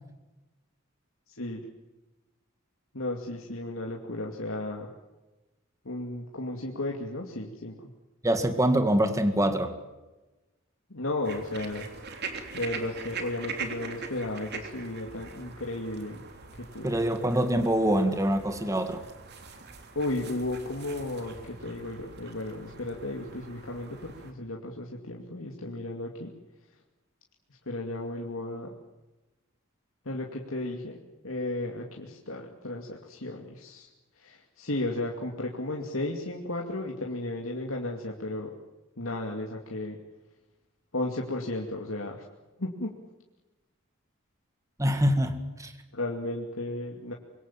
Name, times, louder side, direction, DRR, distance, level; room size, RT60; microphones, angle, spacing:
voice 1, 1.3-1.7 2.9-4.9 5.8-7.9 10.9-11.9 12.5-16.2 16.6-17.0 19.9-26.3 27.7-28.7 30.0-31.0 31.2-33.9 34.1-38.5 39.0-40.0 40.9-42.3 42.6-42.9 45.9-47.1, left 2 dB, 85° left, 0 dB, 2.6 m, -34 dB
voice 2, 8.2-9.7 16.8-19.1 44.8-45.7, right 1 dB, 15° right, 8 dB, 1.9 m, -25 dB
sound 1, 11.2-24.3, right 4 dB, 55° right, 3.3 m, -42 dB
25.5 x 23.5 x 7.5 m, 1.1 s
head